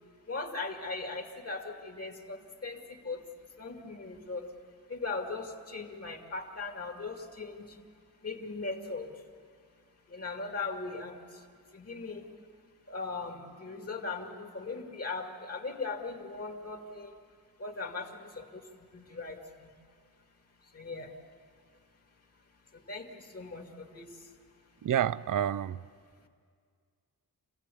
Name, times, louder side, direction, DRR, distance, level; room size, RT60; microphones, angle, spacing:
voice 1, 0.3-3.2 3.6-4.5 4.9-7.7 8.2-9.1 10.1-11.2 11.7-12.3 12.9-17.1 17.6-18.6 18.9-19.7 20.7-21.1 22.7-24.1, left 3 dB, 40° left, 3 dB, 2.2 m, -39 dB
voice 2, 24.8-25.8, right 10 dB, 60° right, 18 dB, 0.5 m, -29 dB
27.0 x 16.5 x 8.4 m, 2.1 s
wide cardioid pair, 120°, 36 cm